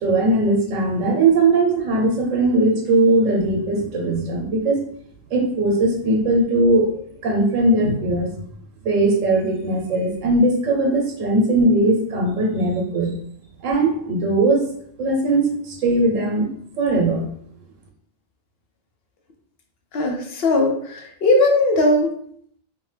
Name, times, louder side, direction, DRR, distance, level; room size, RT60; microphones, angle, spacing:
voice 1, 0.0-4.8 5.3-8.3 8.8-13.1 13.6-14.6 15.0-16.5 16.8-17.2, right 2 dB, 80° right, 1 dB, 1.1 m, -19 dB
voice 2, 19.9-22.2, left 2 dB, 60° left, 2 dB, 0.7 m, -19 dB
2.6 x 2.2 x 3.1 m, 0.64 s
omnidirectional pair, 1.3 m